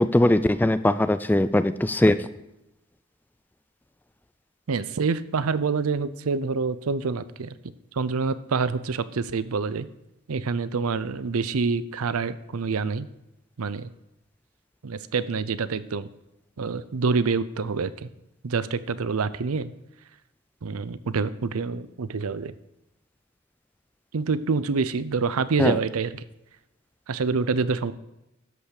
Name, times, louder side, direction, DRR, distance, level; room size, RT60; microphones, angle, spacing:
voice 1, 0.0-2.3 25.6-25.8, left 1 dB, 10° left, 13 dB, 0.3 m, -20 dB
voice 2, 4.7-7.5 7.9-9.9 10.3-13.1 13.6-13.9 14.8-16.1 16.6-18.1 18.4-19.7 20.6-22.5 24.1-26.2 27.1-27.9, right 4 dB, 90° right, 15 dB, 0.6 m, -26 dB
12.5 x 5.7 x 6.5 m, 0.91 s
head